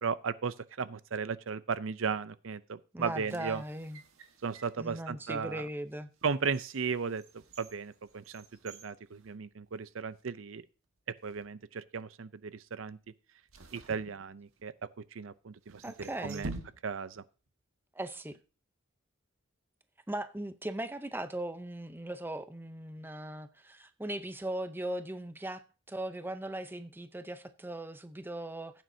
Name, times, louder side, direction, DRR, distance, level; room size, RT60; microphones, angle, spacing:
voice 1, 0.0-3.6 4.4-5.7 6.2-10.6 11.2-13.0 13.7-16.5 16.8-17.2, right 5 dB, 65° right, 0.5 m, -36 dB
voice 2, 2.9-4.0 4.8-6.1 15.8-16.5 17.9-18.3 20.1-28.8, right 1 dB, 10° right, 0.6 m, -39 dB
sound 1, 3.1-4.8 5.5-5.6 6.1-9.9 10.2-10.3 11.1-11.5 13.5-14.8 15.6-17.2 17.5-17.6, right 2 dB, 85° right, 1.5 m, -48 dB
15.5 x 9.1 x 2.7 m
head